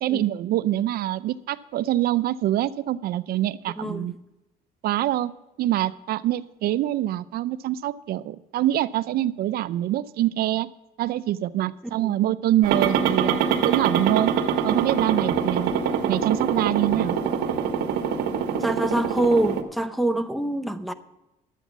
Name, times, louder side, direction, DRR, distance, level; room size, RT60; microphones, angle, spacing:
voice 1, 0.0-4.2 4.8-5.3 5.6-10.7 11.0-14.4 14.6-15.7 16.1-17.2, right 13 dB, 65° right, 0.5 m, -25 dB
voice 2, 3.8-4.1 12.0-12.1 18.6-20.9, right 1 dB, ahead, 0.7 m, -25 dB
sound 1, 12.6-19.6, right 7 dB, 80° right, 1.2 m, -24 dB
11.5 x 8.2 x 6.0 m
cardioid pair, 110°, 17 cm